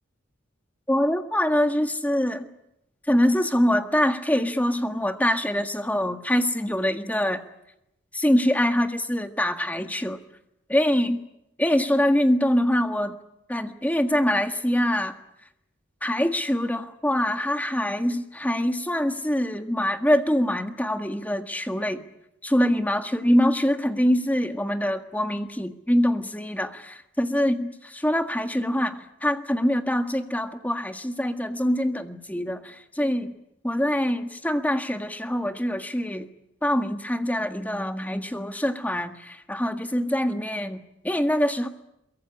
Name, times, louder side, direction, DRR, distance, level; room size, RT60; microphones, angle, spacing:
voice 1, 0.9-2.5 3.1-7.4 8.1-10.2 10.7-11.2 11.6-13.2 13.5-15.2 16.0-22.0 22.4-33.3 33.6-36.3 36.6-41.7, equal, 10° left, 7 dB, 1.7 m, -24 dB
23.0 x 23.0 x 9.8 m, 0.85 s
head